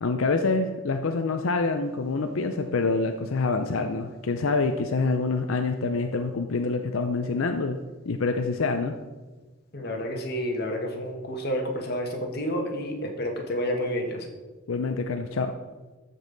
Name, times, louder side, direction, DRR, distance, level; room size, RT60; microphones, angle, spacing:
voice 1, 0.0-7.8 8.1-9.0 14.7-15.5, left 3 dB, 90° left, 6 dB, 0.6 m, -26 dB
voice 2, 9.7-14.3, equal, 50° left, 2 dB, 1.5 m, -30 dB
13.5 x 5.5 x 4.0 m, 1.2 s
head